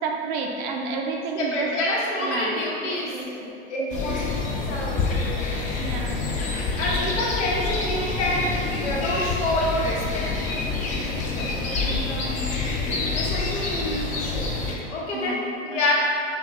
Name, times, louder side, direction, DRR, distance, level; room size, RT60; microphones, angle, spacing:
voice 1, 0.0-1.7 2.2-2.6 3.1-3.3 3.8-4.1 5.7-6.2 12.1-12.5 15.1-15.4 15.7-15.9, right 4 dB, 40° right, 1 dB, 0.5 m, -31 dB
voice 2, 1.3-5.5 6.8-10.5 11.0-12.3 13.1-14.5 14.9-15.9, left 1 dB, 75° left, -4 dB, 1.1 m, -28 dB
sound 1, 3.9-14.7, left 3 dB, 25° left, 0.4 m, -27 dB
5.7 x 2.3 x 2.9 m, 2.6 s
hypercardioid pair, 125°, 34 cm